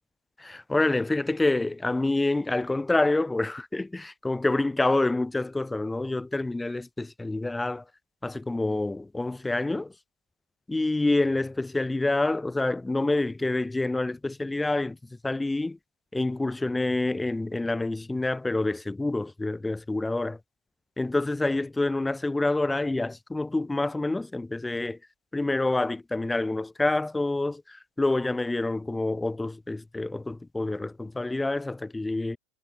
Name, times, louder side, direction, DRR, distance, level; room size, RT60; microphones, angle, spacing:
voice 1, 0.4-7.8 8.2-9.9 10.7-15.8 16.1-20.4 21.0-25.0 25.3-32.4, left 2 dB, 10° left, 4.7 m, -27 dB
hypercardioid pair, 85°, 0 cm